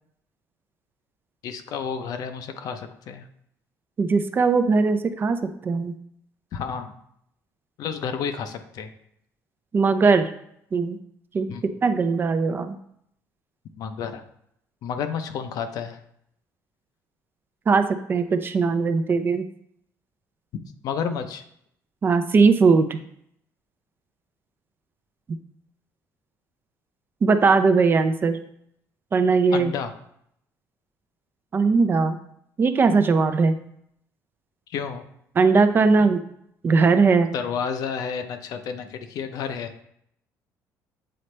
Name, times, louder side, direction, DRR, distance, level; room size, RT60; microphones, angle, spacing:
voice 1, 1.4-3.3 6.5-6.9 7.8-8.9 11.5-11.6 13.8-14.2 14.8-16.0 20.8-21.4 29.5-29.9 34.7-35.1 36.0-36.1 37.3-39.7, left 6 dB, 65° left, 8 dB, 0.7 m, -31 dB
voice 2, 4.0-5.4 5.6-5.9 9.7-10.3 10.7-11.0 11.3-11.5 11.8-12.7 17.7-17.8 18.1-19.4 22.0-23.0 27.2-28.4 29.1-29.7 31.5-32.2 32.6-33.6 35.4-36.2 36.6-37.3, right 4 dB, 30° right, 9 dB, 0.5 m, -19 dB
7.7 x 4.1 x 3.3 m, 0.72 s
cardioid pair, 120°, 7 cm